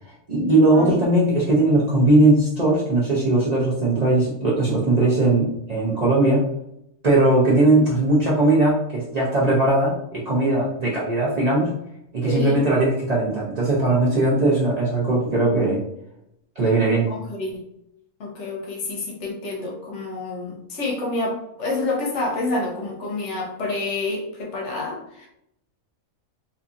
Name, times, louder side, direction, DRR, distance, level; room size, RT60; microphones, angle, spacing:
voice 1, 0.3-6.4 7.0-11.7 12.1-15.8 16.6-17.1, right 2 dB, 50° right, -6 dB, 0.4 m, -19 dB
voice 2, 12.2-12.6 17.1-17.5 18.2-25.3, left 2 dB, 65° left, -1 dB, 0.9 m, -28 dB
2.7 x 2.6 x 2.4 m, 0.78 s
omnidirectional pair, 1.5 m